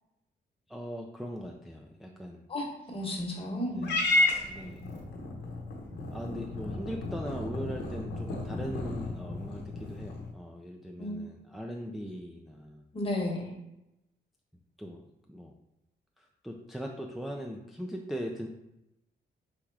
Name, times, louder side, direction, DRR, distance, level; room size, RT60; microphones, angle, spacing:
voice 1, 0.7-2.5 3.7-3.9 4.4-4.8 6.1-12.8 14.8-15.0 15.3-15.5 16.2-18.5, equal, ahead, 1 dB, 0.4 m, -40 dB
voice 2, 2.5-4.0 11.0-11.2 12.9-13.5, left 1 dB, 30° left, -1 dB, 1.2 m, -33 dB
Purr / Meow, 3.8-10.3, left 2 dB, 80° left, 0.9 m, -32 dB
3.6 x 3.0 x 4.7 m, 0.90 s
cardioid pair, 105°, 17 cm